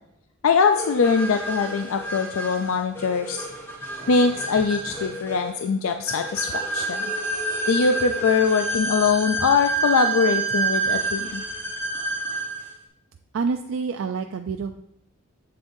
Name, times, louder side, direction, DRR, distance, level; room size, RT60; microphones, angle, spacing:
voice 1, 0.4-3.5 4.1-7.1 7.7-11.4, left 5 dB, 70° left, 6 dB, 0.4 m, -22 dB
sound 1, 0.7-12.7, right 2 dB, 10° left, 1.1 m, -28 dB
voice 2, 13.3-14.8, right 5 dB, 65° right, 6 dB, 0.3 m, -27 dB
7.6 x 7.3 x 2.6 m, 0.82 s
head